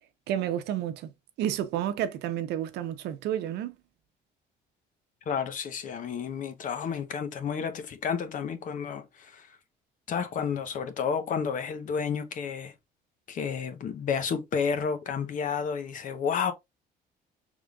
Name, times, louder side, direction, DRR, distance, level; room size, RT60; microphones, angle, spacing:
voice 1, 0.3-1.1 1.4-3.7, right 11 dB, 80° right, 0.7 m, -30 dB
voice 2, 5.3-9.5 10.1-12.7 13.3-16.5, left 6 dB, 50° left, 0.8 m, -31 dB
5.0 x 3.6 x 2.3 m
cardioid pair, 110°, 17 cm